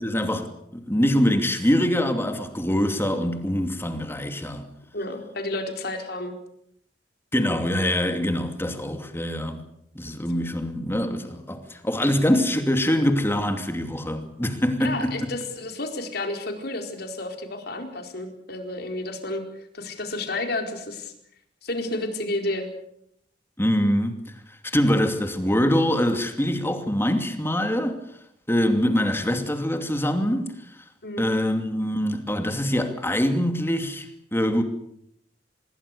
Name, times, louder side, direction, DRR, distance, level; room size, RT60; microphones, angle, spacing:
voice 1, 0.0-4.7 7.3-9.6 9.9-15.3 23.6-24.4 24.6-28.0 28.5-30.5 31.2-34.6, equal, 15° left, 2.6 m, -24 dB
voice 2, 4.9-6.3 14.8-19.4 19.7-21.1 21.6-22.7 31.0-31.3, left 2 dB, 65° left, 4.5 m, -31 dB
26.5 x 21.0 x 6.8 m
head